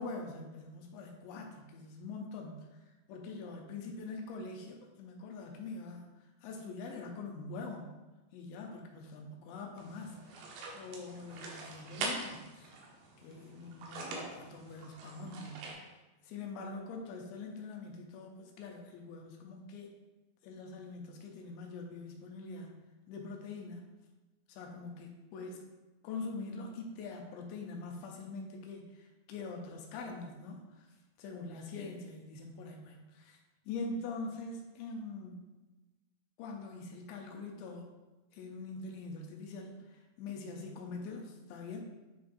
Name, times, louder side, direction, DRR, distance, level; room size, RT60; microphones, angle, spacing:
voice 1, 0.0-8.0 8.3-12.7 13.2-16.0 16.3-19.9 20.4-23.9 24.5-25.7 26.0-33.4 33.7-35.5 36.4-37.9 38.3-41.8, left 3 dB, 80° left, 1 dB, 2.8 m, -44 dB
sound 1, 9.8-15.7, right 3 dB, 80° right, 3.0 m, -44 dB
9.3 x 3.9 x 2.6 m, 1.1 s
omnidirectional pair, 5.3 m